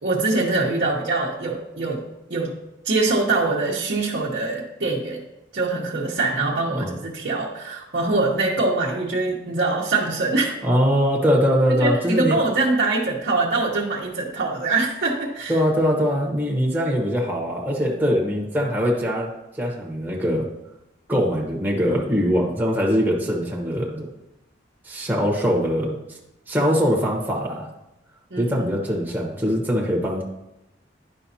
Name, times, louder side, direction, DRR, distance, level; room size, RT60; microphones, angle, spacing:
voice 1, 0.0-2.0 2.3-2.5 2.8-5.2 5.5-10.5 11.8-15.6 28.3-28.8, right 3 dB, 60° right, -5 dB, 1.0 m, -23 dB
voice 2, 10.6-12.4 15.5-19.3 19.6-20.5 21.1-24.1 24.8-26.0 26.5-27.7 28.4-30.2, equal, 10° right, -3 dB, 1.1 m, -22 dB
10.5 x 5.4 x 2.8 m, 0.92 s
head